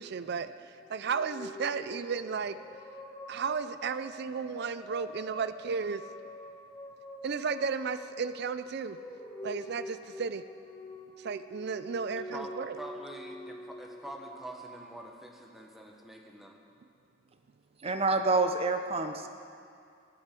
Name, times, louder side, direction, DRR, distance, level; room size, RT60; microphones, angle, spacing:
voice 1, 0.0-2.6 3.3-6.0 7.2-9.0 9.4-10.4 11.2-12.8, right 5 dB, 60° right, 12 dB, 0.4 m, -34 dB
sound 1, 0.7-15.2, left 1 dB, 25° left, 1.7 m, -46 dB
voice 2, 12.8-16.6, right 1 dB, ahead, 0 dB, 1.3 m, -45 dB
voice 3, 17.8-19.4, right 3 dB, 30° right, 6 dB, 0.8 m, -28 dB
12.0 x 7.8 x 8.3 m, 2.4 s
head